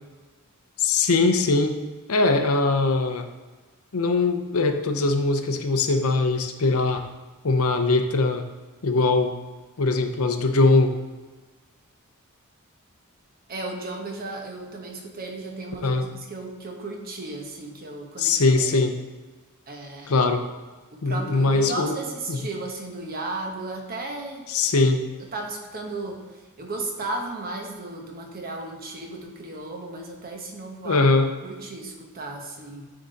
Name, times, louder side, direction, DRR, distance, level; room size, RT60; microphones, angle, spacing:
voice 1, 0.8-1.8 2.1-3.3 3.9-7.0 7.4-8.4 8.8-9.3 9.8-10.9 15.8-16.0 18.2-18.9 20.1-20.4 21.0-22.0 22.3-22.4 24.5-25.0 30.8-31.3, left 3 dB, 70° left, 6 dB, 0.7 m, -21 dB
voice 2, 13.5-18.8 19.7-20.2 20.9-24.5 25.3-31.1 31.4-32.9, right 2 dB, 40° right, 2 dB, 1.0 m, -35 dB
9.3 x 3.8 x 4.0 m, 1.3 s
head